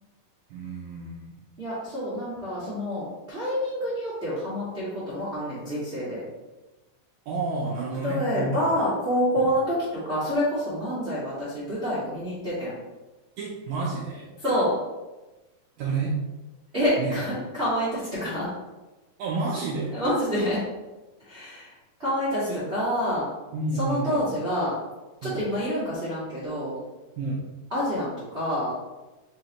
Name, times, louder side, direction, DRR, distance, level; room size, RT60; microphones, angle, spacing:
voice 1, 0.5-1.3 7.3-8.6 13.4-14.3 15.8-16.2 17.0-17.2 19.2-20.0 22.5-22.6 23.5-24.3 25.2-25.4 27.2-27.4, right 3 dB, 80° right, -3 dB, 1.7 m, -30 dB
voice 2, 1.6-6.2 8.0-12.7 14.4-14.7 16.7-18.5 19.9-20.6 21.2-23.3 23.8-24.7 25.2-26.7 27.7-28.7, equal, 45° right, -12 dB, 0.8 m, -27 dB
5.7 x 3.1 x 2.9 m, 1.1 s
omnidirectional pair, 3.9 m